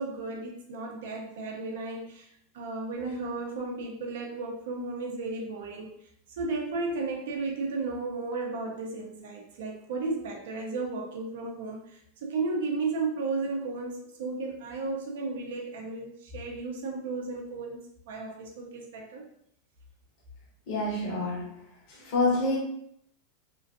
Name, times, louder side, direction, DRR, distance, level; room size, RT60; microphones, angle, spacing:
voice 1, 0.0-2.3 2.5-5.9 6.3-19.3, right 3 dB, 80° right, 0 dB, 0.6 m, -34 dB
voice 2, 20.7-21.6 21.9-22.6, left 2 dB, 60° left, -5 dB, 1.1 m, -27 dB
2.9 x 2.6 x 2.5 m, 0.70 s
supercardioid pair, 135°, 0 cm